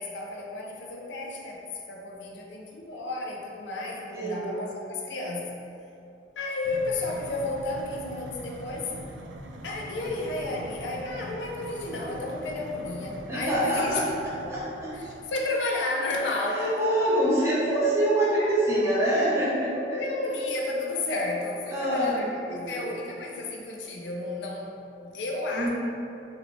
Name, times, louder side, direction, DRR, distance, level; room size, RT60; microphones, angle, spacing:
voice 1, 0.0-5.6 6.4-8.9 9.6-14.0 14.4-14.5 14.9-16.8 17.4-17.5 17.8-18.0 18.4-18.5 19.7-25.7, left 2 dB, 75° left, -1 dB, 0.4 m, -32 dB
voice 2, 4.1-4.5 13.3-14.0 14.5-14.9 16.4-20.0 21.7-22.9 25.5-25.7, right 1 dB, 15° right, -9 dB, 0.7 m, -25 dB
sound 1, 6.6-15.2, right 1 dB, 80° right, 0.3 m, -42 dB
2.9 x 2.7 x 3.0 m, 2.6 s
head